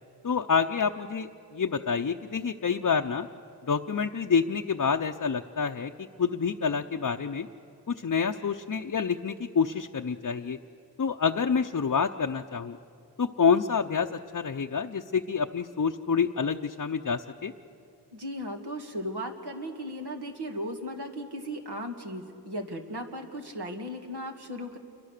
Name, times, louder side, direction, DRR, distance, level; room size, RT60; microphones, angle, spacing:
voice 1, 0.2-3.3 3.7-7.5 7.9-10.6 11.0-12.8 13.2-17.5, left 6 dB, 45° left, 3 dB, 0.7 m, -27 dB
voice 2, 18.1-24.8, equal, 70° right, 2 dB, 2.3 m, -36 dB
28.5 x 22.5 x 6.7 m, 2.6 s
wide cardioid pair, 50°, 41 cm